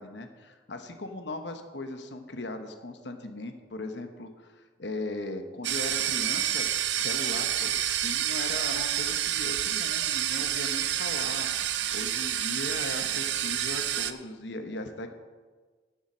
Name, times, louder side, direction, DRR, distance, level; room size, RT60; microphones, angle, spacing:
voice 1, 0.0-6.7 6.9-15.1, left 2 dB, 80° left, 6 dB, 1.0 m, -38 dB
sound 1, 5.6-14.1, right 11 dB, 80° right, 0.6 m, -29 dB
10.5 x 7.2 x 6.3 m, 1.4 s
head